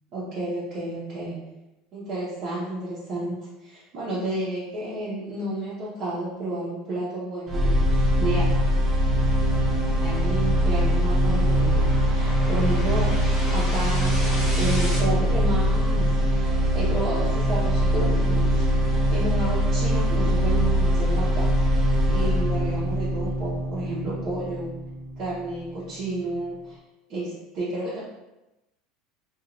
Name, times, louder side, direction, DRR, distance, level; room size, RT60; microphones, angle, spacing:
voice 1, 0.1-1.4 1.9-3.3 3.6-8.5 10.0-21.5 22.1-24.7 25.2-26.8 27.1-28.0, right 1 dB, 45° right, -9 dB, 0.9 m, -31 dB
sound 1, 7.5-25.5, equal, 25° right, 0.5 m, -22 dB
sound 2, 9.1-15.0, equal, 5° left, 1.0 m, -37 dB
3.0 x 2.5 x 2.5 m, 1.0 s
supercardioid pair, 150°, 0 cm